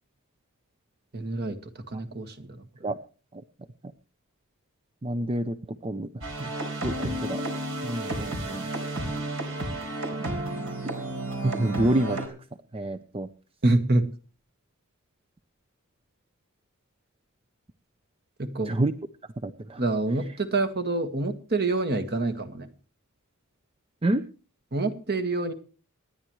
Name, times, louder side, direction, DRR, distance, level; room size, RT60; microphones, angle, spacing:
voice 1, 1.1-1.6 1.9-2.9 13.6-14.0 18.4-18.7 19.8-22.7 24.7-25.5, right 2 dB, 50° right, 8 dB, 1.7 m, -27 dB
voice 2, 5.0-5.6 5.8-6.1 6.4-6.5 6.8-6.9 7.2-7.4 7.8-8.6 11.4-12.2 12.7-13.3 18.7-18.9 19.4-19.8 24.0-24.2, right 1 dB, 25° right, 11 dB, 0.6 m, -27 dB
sound 1, 6.2-12.3, right 1 dB, 65° right, 3.9 m, -32 dB
27.0 x 10.0 x 3.2 m, 0.37 s
head